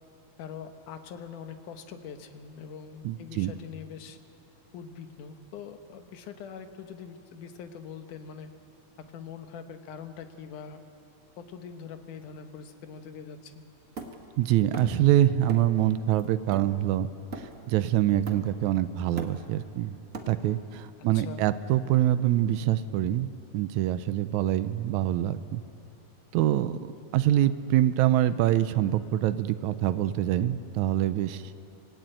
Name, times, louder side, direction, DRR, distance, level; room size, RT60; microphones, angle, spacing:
voice 1, 0.4-4.2 4.7-8.5 9.0-10.8 11.4-13.6 21.1-21.5 27.0-27.1, left 7 dB, 70° left, 7 dB, 2.5 m, -43 dB
voice 2, 3.0-3.5 14.4-17.1 17.4-19.9 20.3-23.3 23.5-25.6 26.3-26.8 27.1-31.4, right 12 dB, 80° right, 12 dB, 1.7 m, -25 dB
Hammer, 14.0-15.1 15.5-15.8 16.2-17.8 18.3-18.7 19.0-20.7, right 3 dB, 50° right, 1.0 m, -41 dB
26.0 x 17.0 x 8.9 m, 2.7 s
omnidirectional pair, 4.1 m